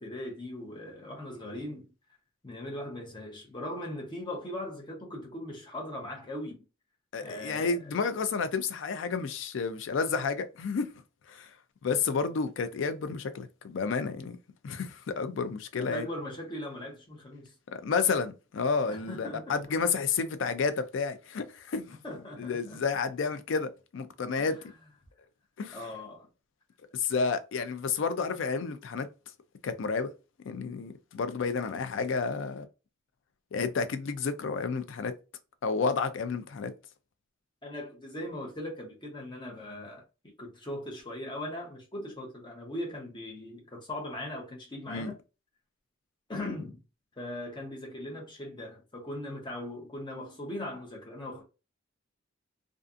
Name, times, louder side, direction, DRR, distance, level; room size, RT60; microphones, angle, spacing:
voice 1, 0.0-1.9 2.4-6.6 7.2-8.2 15.8-17.5 18.9-19.7 22.0-22.8 24.4-24.6 25.7-26.3 37.6-40.0 40.4-45.2 46.3-46.8 47.2-51.4, left 1 dB, 25° left, 0.7 m, -39 dB
voice 2, 7.1-10.9 11.3-11.5 11.8-14.4 14.6-16.1 17.7-22.0 22.4-24.6 25.6-25.8 26.9-29.1 29.6-30.1 30.4-32.7 33.5-35.1 35.6-36.7 44.9-45.1, left 5 dB, 65° left, 0.4 m, -31 dB
2.5 x 2.4 x 2.4 m
head